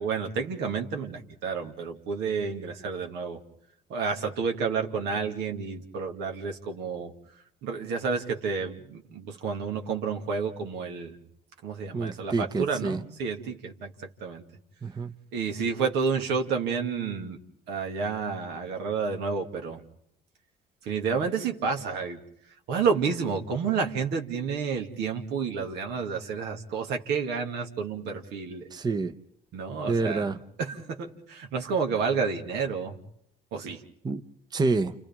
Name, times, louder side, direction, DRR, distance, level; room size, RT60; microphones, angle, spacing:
voice 1, 0.0-3.4 3.9-7.1 7.6-11.2 11.6-13.9 14.2-14.4 15.3-17.4 17.7-19.8 20.9-22.2 22.7-28.7 29.5-30.3 30.6-32.9 33.5-33.8, right 5 dB, 80° right, 3 dB, 2.3 m, -30 dB
voice 2, 11.9-13.0 14.8-15.1 28.7-29.1 29.9-30.4 34.0-34.2 34.5-34.9, right 3 dB, 25° right, 8 dB, 0.8 m, -27 dB
30.0 x 28.5 x 3.6 m, 0.73 s
cardioid pair, 95°, 17 cm